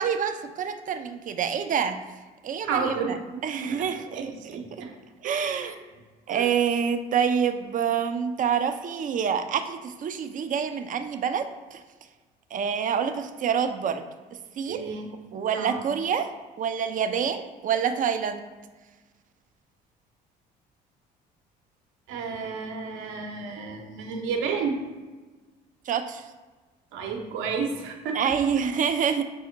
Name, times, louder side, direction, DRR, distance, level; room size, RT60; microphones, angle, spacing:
voice 1, 0.0-2.0 2.4-3.2 3.4-4.3 5.2-5.8 6.3-11.8 12.5-14.0 14.6-14.9 15.3-16.3 16.6-18.5 25.9-26.2 28.1-29.2, right 7 dB, 40° right, 8 dB, 0.5 m, -27 dB
voice 2, 2.6-4.9 5.2-5.7 6.3-6.5 14.7-15.1 15.5-15.8 22.1-24.8 26.9-28.2, right 5 dB, 70° right, 2 dB, 0.8 m, -32 dB
6.2 x 2.1 x 3.8 m, 1.3 s
hypercardioid pair, 60°, 21 cm